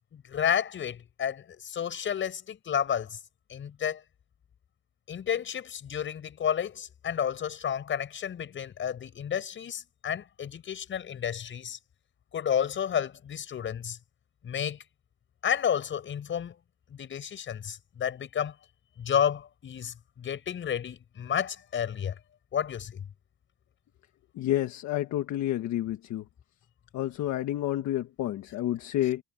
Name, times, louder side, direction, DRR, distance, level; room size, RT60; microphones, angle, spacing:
voice 1, 0.1-3.2 3.5-4.0 5.1-11.8 12.3-14.0 14.4-14.8 15.4-16.5 16.9-18.5 19.0-22.1 22.5-23.0, left 8 dB, 35° left, 6.5 m, -31 dB
voice 2, 24.4-26.2 26.9-29.2, left 13 dB, 60° left, 1.6 m, -29 dB
cardioid pair, 155°, 32 cm